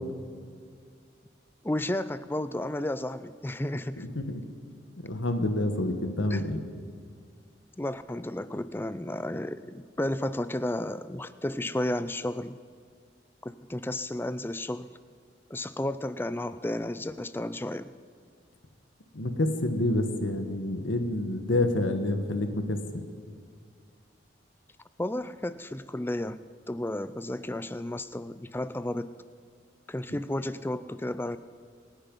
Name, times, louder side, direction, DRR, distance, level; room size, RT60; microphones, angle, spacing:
voice 1, 1.6-4.0 6.3-6.4 7.8-12.6 13.4-14.9 15.5-17.9 25.0-29.1 29.9-31.4, left 1 dB, 10° left, 14 dB, 0.4 m, -32 dB
voice 2, 4.0-4.4 5.0-6.6 19.1-22.8, left 1 dB, 85° left, 7 dB, 1.4 m, -28 dB
27.0 x 9.9 x 5.4 m, 2.1 s
head